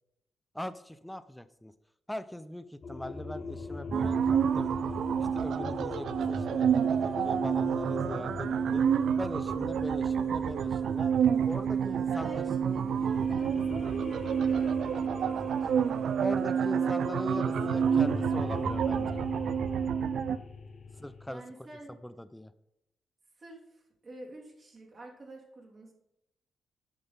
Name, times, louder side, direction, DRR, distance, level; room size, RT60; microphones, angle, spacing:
voice 1, 0.5-1.7 2.1-4.7 5.2-8.8 9.2-12.6 16.2-19.2 21.0-21.4 22.0-22.5, left 1 dB, 5° left, 13 dB, 0.5 m, -40 dB
sound 1, 2.8-11.9 12.6-21.3, left 4 dB, 50° left, 1.0 m, -41 dB
sound 2, 3.9-20.4, right 7 dB, 75° right, 0.4 m, -28 dB
voice 2, 12.1-16.1 16.4-17.7 18.8-19.1 21.3-22.0 23.4-25.9, right 1 dB, 45° right, -2 dB, 2.8 m, -49 dB
8.8 x 6.1 x 4.0 m, 0.83 s
cardioid pair, 80°, 0 cm